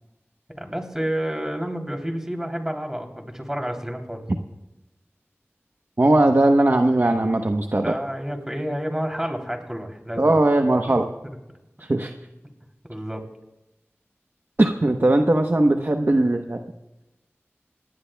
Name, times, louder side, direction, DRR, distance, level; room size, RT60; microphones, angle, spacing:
voice 1, 0.5-4.3 7.8-10.4 11.2-11.4 12.8-13.3, equal, 10° right, 2 dB, 3.2 m, -30 dB
voice 2, 6.0-7.9 10.2-11.0 11.8-12.1 14.6-16.6, right 2 dB, 50° right, 4 dB, 1.0 m, -19 dB
26.5 x 20.0 x 2.3 m, 0.99 s
wide cardioid pair, 50°, 5 cm